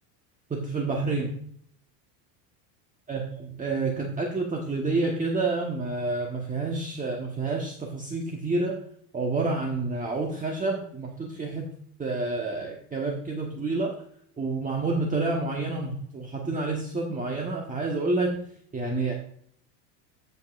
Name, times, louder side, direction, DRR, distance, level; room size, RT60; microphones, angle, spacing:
voice 1, 0.5-1.3 3.1-8.8 9.1-11.7 12.0-13.9 14.4-18.4 18.7-19.1, right 3 dB, 15° right, 0 dB, 1.2 m, -29 dB
16.0 x 5.5 x 2.5 m, 0.65 s
supercardioid pair, 115°, 47 cm